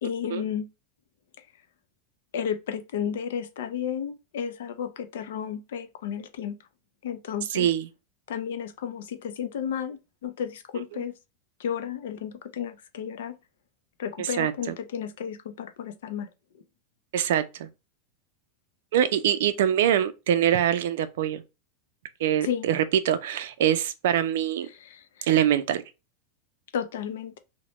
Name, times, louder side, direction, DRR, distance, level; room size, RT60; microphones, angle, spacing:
voice 1, 0.0-0.7 2.3-6.6 7.0-7.7 8.3-11.1 11.6-13.4 14.0-16.3 22.4-22.7 24.6-25.3 26.7-27.4, left 8 dB, 85° left, 0.5 m, -33 dB
voice 2, 7.5-7.9 10.9-11.0 14.2-14.5 17.1-17.7 18.9-21.4 22.2-24.7 25.2-25.8, right 10 dB, 70° right, 0.4 m, -24 dB
2.9 x 2.1 x 3.0 m
supercardioid pair, 180°, 0 cm